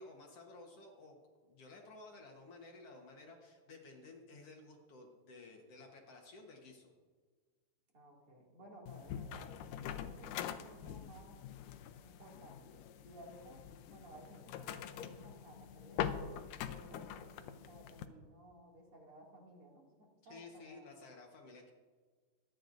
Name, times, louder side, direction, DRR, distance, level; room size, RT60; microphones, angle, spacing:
voice 1, 0.0-6.9 20.2-21.7, left 3 dB, 60° left, 1 dB, 1.8 m, -54 dB
voice 2, 7.9-11.3 12.0-13.6 13.9-16.3 16.6-20.9, right 1 dB, 40° right, -2 dB, 3.0 m, -57 dB
sound 1, 8.9-18.1, left 9 dB, 80° left, 2.1 m, -44 dB
23.5 x 10.0 x 2.6 m, 1.5 s
omnidirectional pair, 4.2 m